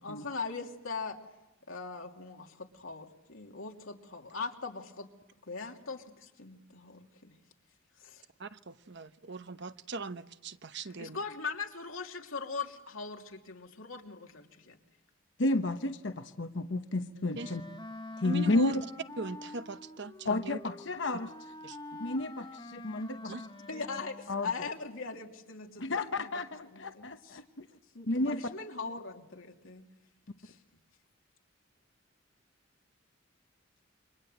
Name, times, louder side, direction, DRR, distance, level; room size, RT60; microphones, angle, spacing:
voice 1, 0.0-1.2 1.7-5.1 5.5-7.3 8.0-8.2 10.8-14.8 17.2-17.4 23.2-26.3 26.7-27.4 27.9-29.8 30.4-30.6, left 4 dB, 85° left, 2 dB, 2.9 m, -41 dB
voice 2, 8.4-11.2 17.4-17.5 18.2-18.8 19.2-20.6 21.6-21.8 23.3-23.4, right 2 dB, 60° right, 11 dB, 1.0 m, -39 dB
voice 3, 15.4-17.6 18.2-18.8 20.2-21.3 22.0-23.3 24.3-24.5 25.8-27.7 28.1-28.4, left 2 dB, 60° left, 8 dB, 1.0 m, -31 dB
Wind instrument woodwind instrument, 17.3-24.5, left 2 dB, 20° left, 1.0 m, -47 dB
28.5 x 25.0 x 8.0 m, 0.97 s
head